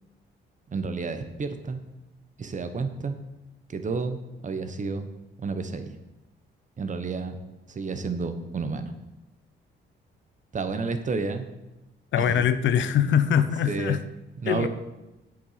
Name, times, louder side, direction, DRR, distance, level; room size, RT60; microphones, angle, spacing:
voice 1, 0.7-1.8 2.4-3.1 3.7-5.1 5.4-6.0 6.8-7.4 7.7-8.9 10.5-11.5 12.2-12.5 13.0-13.1 13.6-14.0 14.4-14.7, right 4 dB, 40° right, 8 dB, 1.1 m, -30 dB
voice 2, 12.1-14.0 14.4-14.7, left 9 dB, 70° left, 12 dB, 0.7 m, -23 dB
7.7 x 7.4 x 5.8 m, 0.97 s
cardioid pair, 90°, 20 cm